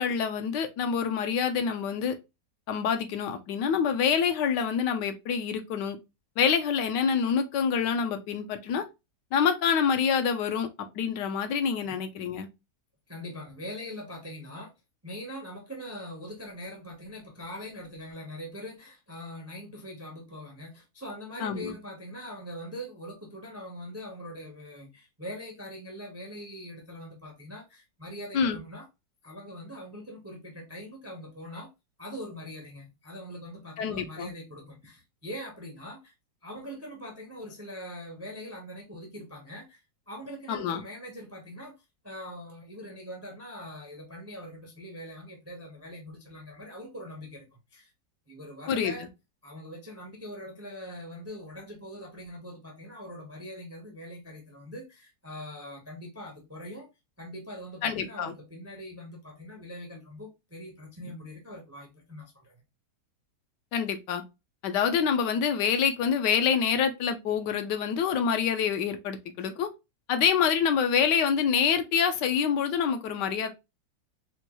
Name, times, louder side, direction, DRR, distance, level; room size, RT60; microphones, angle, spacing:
voice 1, 0.0-2.2 2.7-6.0 6.4-8.8 9.3-12.5 21.4-21.7 28.3-28.6 33.8-34.3 40.5-40.8 48.7-48.9 57.8-58.3 63.7-64.2 64.6-69.7 70.1-73.5, left 7 dB, 80° left, 1.2 m, -26 dB
voice 2, 13.1-14.7 15.0-28.9 29.2-31.7 32.0-36.1 36.4-39.8 40.1-41.7 42.0-47.9 48.3-49.1 49.4-56.9 57.2-62.6, equal, 20° right, 0.4 m, -42 dB
4.3 x 2.3 x 2.9 m
omnidirectional pair, 1.9 m